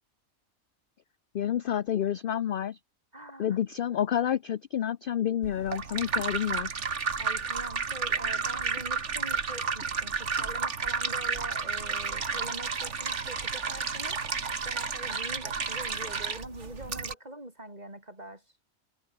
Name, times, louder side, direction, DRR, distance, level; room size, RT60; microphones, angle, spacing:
voice 1, 1.3-2.8 3.4-6.7, left 10 dB, 60° left, 0.6 m, -29 dB
voice 2, 3.1-3.6 7.2-14.2 14.6-18.4, right 1 dB, 30° right, 5.6 m, -44 dB
sound 1, 5.4-17.1, right 5 dB, 55° right, 2.0 m, -32 dB
omnidirectional pair, 1.5 m